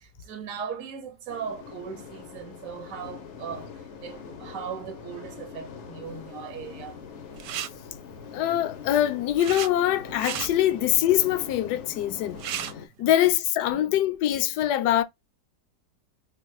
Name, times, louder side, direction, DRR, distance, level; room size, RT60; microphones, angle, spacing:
voice 1, 0.0-3.7 4.0-7.0 13.0-13.3 13.7-13.9, right 7 dB, 60° right, 1.1 m, -38 dB
sound 1, 1.3-12.9, left 6 dB, 60° left, 0.8 m, -43 dB
sound 2, 7.3-7.7 8.9-9.7 10.1-10.5 12.0-12.1 12.3-12.7, right 10 dB, 75° right, 1.2 m, -33 dB
voice 2, 8.3-12.4 13.0-15.0, left 12 dB, 75° left, 1.1 m, -23 dB
4.2 x 2.1 x 3.1 m
omnidirectional pair, 1.9 m